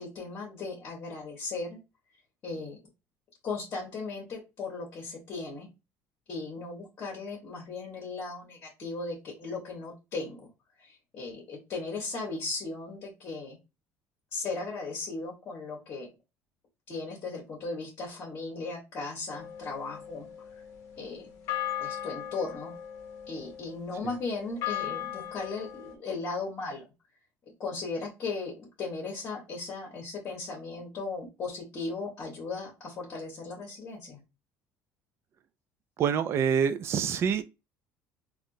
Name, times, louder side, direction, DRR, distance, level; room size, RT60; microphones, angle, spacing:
voice 1, 0.0-1.8 2.4-2.8 3.4-5.7 6.3-10.5 10.8-13.6 14.3-16.1 16.9-20.3 21.0-21.4 21.8-22.7 23.3-26.8 27.6-34.2, left 3 dB, 40° left, 1.2 m, -37 dB
sound 1, 19.3-25.9, left 11 dB, 70° left, 0.7 m, -38 dB
voice 2, 36.0-37.4, right 7 dB, 45° right, 0.4 m, -26 dB
3.4 x 2.4 x 2.6 m
cardioid pair, 130°, 6 cm